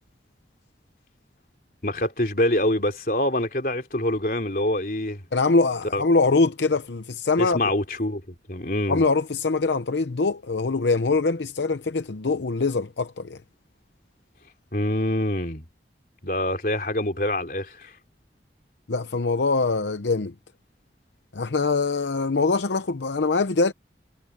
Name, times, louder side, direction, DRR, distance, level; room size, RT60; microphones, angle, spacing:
voice 1, 1.8-5.2 5.9-6.0 7.4-8.2 8.5-9.0 14.7-15.7 16.2-17.9, left 1 dB, 50° left, 3.6 m, -25 dB
voice 2, 5.3-7.6 8.9-13.4 18.9-20.3 21.3-23.7, left 3 dB, 85° left, 0.8 m, -23 dB
head